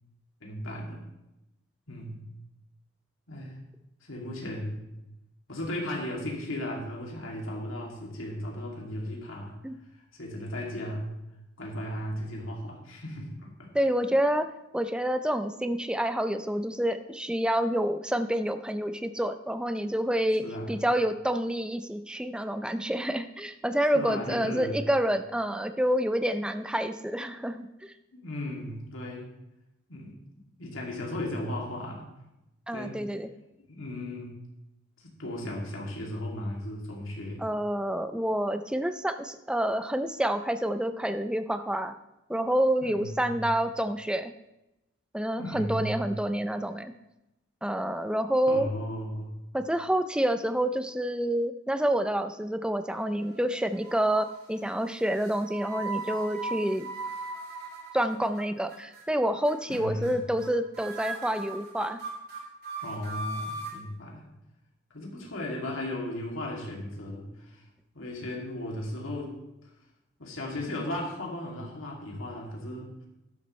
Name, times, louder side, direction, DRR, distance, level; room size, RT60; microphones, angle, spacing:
voice 1, 0.4-1.1 1.9-2.2 3.3-3.6 4.0-4.8 5.5-9.6 10.1-11.2 11.6-13.7 14.0-14.1 20.4-20.8 23.9-24.8 28.1-29.3 29.9-30.1 30.6-32.0 32.7-33.0 33.7-34.4 35.0-37.4 42.8-43.4 45.4-46.1 48.5-49.3 59.7-60.2 62.8-64.2 64.9-67.6 67.9-69.4 70.2-72.9, left 1 dB, 85° left, -2 dB, 2.6 m, -36 dB
voice 2, 13.7-14.5 14.7-27.7 32.7-33.3 37.4-41.9 42.3-44.3 45.1-46.9 47.6-48.7 49.5-56.9 57.9-62.0, right 1 dB, 5° right, 9 dB, 0.5 m, -28 dB
sound 1, 52.9-53.5 53.8-54.3 55.1-58.4 58.7-59.0 59.5-59.8 60.0-60.1 60.4-60.5 60.7-63.8, right 3 dB, 55° right, 3.0 m, -38 dB
12.5 x 10.5 x 3.2 m, 0.91 s
head